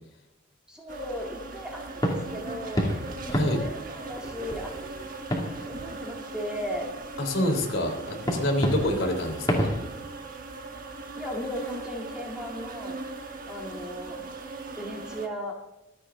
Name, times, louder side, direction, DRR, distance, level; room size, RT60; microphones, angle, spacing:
voice 1, 0.7-6.9 11.2-13.0 13.5-14.2 14.8-15.6, equal, 5° right, -2 dB, 2.0 m, -37 dB
sound 1, 0.9-15.3, right 3 dB, 45° right, 1.3 m, -39 dB
sound 2, 2.0-6.5 7.0-7.1 8.2-9.8, equal, 20° left, 2.4 m, -31 dB
voice 2, 3.3-3.6 7.2-9.7, left 1 dB, 70° left, 2 dB, 3.2 m, -27 dB
24.5 x 8.3 x 3.8 m, 0.92 s
head